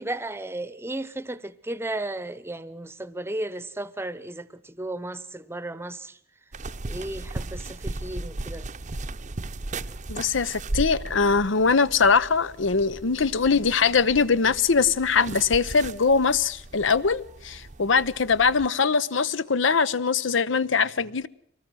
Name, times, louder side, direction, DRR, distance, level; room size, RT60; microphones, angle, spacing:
voice 1, 0.0-6.2 6.9-8.7, right 1 dB, 15° right, 0.9 m, -34 dB
sound 1, 6.5-18.7, right 2 dB, 40° right, 0.8 m, -37 dB
voice 2, 10.1-21.3, left 5 dB, 70° left, 0.8 m, -22 dB
24.0 x 19.0 x 6.3 m
head